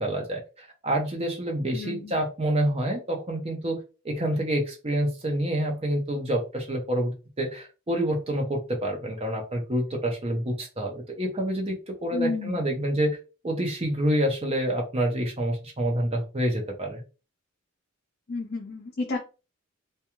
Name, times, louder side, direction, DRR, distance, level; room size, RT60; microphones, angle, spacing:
voice 1, 0.0-3.8 4.0-13.2 13.4-17.0, right 1 dB, 30° right, 1 dB, 0.7 m, -27 dB
voice 2, 1.7-2.2 12.1-12.6 18.3-19.2, left 3 dB, 50° left, 1 dB, 0.4 m, -31 dB
2.3 x 2.2 x 2.9 m, 0.32 s
head